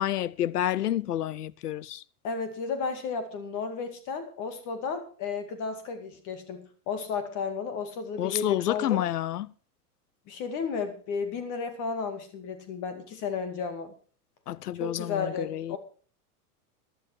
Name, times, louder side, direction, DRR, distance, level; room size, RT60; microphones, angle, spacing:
voice 1, 0.0-2.0 8.2-9.5 14.5-15.8, left 12 dB, 85° left, 0.7 m, -29 dB
voice 2, 2.2-9.0 10.3-13.9 14.8-15.8, left 5 dB, 40° left, 2.2 m, -33 dB
14.0 x 11.5 x 4.5 m
hypercardioid pair, 110°, 45 cm